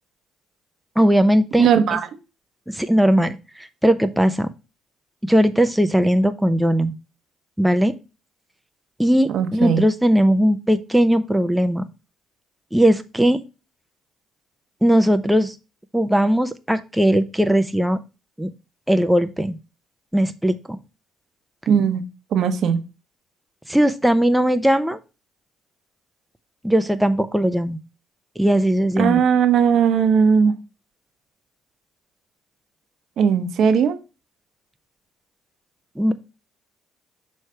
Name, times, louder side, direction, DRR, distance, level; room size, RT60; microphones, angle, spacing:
voice 1, 1.0-2.0 2.7-4.5 5.2-6.9 7.6-7.9 9.0-11.9 12.7-13.4 14.8-15.5 15.9-18.0 18.4-18.5 18.9-19.6 20.1-20.8 23.7-25.0 26.6-27.8 28.4-29.2 36.0-36.1, equal, 5° right, 8 dB, 0.6 m, -19 dB
voice 2, 1.6-2.0 9.3-9.8 21.7-22.0 22.3-22.8 29.0-30.5 33.2-34.0, right 7 dB, 65° right, 8 dB, 0.9 m, -18 dB
6.4 x 3.2 x 5.5 m, 0.29 s
cardioid pair, 85°, 0 cm